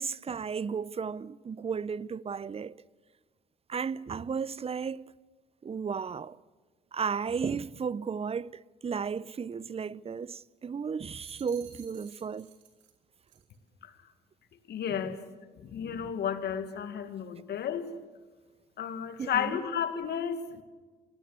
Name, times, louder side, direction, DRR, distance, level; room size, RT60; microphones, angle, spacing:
voice 1, 0.0-2.7 3.7-5.1 5.6-6.4 6.9-12.5 19.2-19.6, right 6 dB, 30° right, 0.7 m, -34 dB
sound 1, 11.0-13.0 13.3-13.6, right 9 dB, 75° right, 3.2 m, -55 dB
voice 2, 14.7-15.2 15.6-17.9 18.8-20.6, left 8 dB, 60° left, 2.1 m, -33 dB
27.5 x 17.0 x 8.0 m
hypercardioid pair, 50°, 19 cm